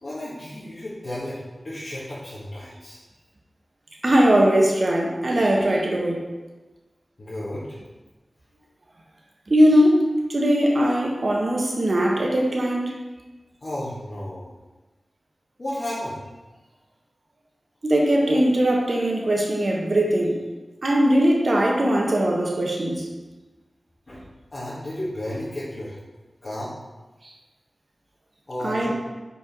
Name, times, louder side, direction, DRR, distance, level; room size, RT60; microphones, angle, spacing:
voice 1, 0.0-3.0 7.2-7.8 13.6-14.5 15.6-16.2 24.1-24.3 24.5-26.0 26.4-26.7 28.5-28.9, left 1 dB, 45° left, -11 dB, 1.9 m, -33 dB
voice 2, 4.0-6.2 9.5-12.9 17.8-20.4 20.8-23.1 28.6-28.9, equal, 50° right, 0 dB, 1.3 m, -20 dB
5.4 x 4.5 x 5.3 m, 1.2 s
wide cardioid pair, 85°, 0 cm